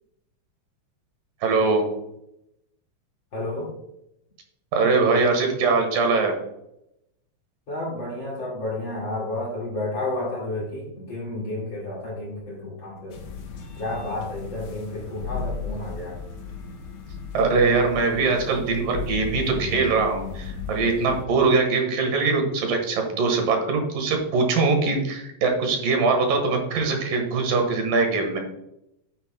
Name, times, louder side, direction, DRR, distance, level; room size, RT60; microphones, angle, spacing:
voice 1, 1.4-1.9 4.7-6.4 17.3-28.4, right 4 dB, 70° right, 3 dB, 3.0 m, -22 dB
voice 2, 3.3-3.7 7.7-13.2 13.8-16.2, left 2 dB, 40° left, -3 dB, 2.2 m, -31 dB
sound 1, 13.1-21.3, left 5 dB, 70° left, 1.6 m, -35 dB
9.6 x 9.0 x 2.2 m, 0.82 s
omnidirectional pair, 4.2 m